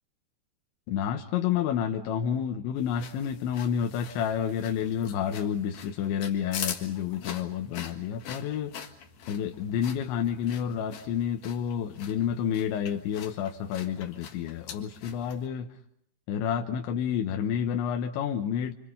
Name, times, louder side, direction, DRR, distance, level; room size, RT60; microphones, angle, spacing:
voice 1, 0.9-8.9 9.3-15.7 16.3-18.7, left 8 dB, 80° left, 3.4 m, -29 dB
sound 1, 2.8-15.5, left 8 dB, 55° left, 2.5 m, -44 dB
28.0 x 25.5 x 5.6 m
omnidirectional pair, 5.3 m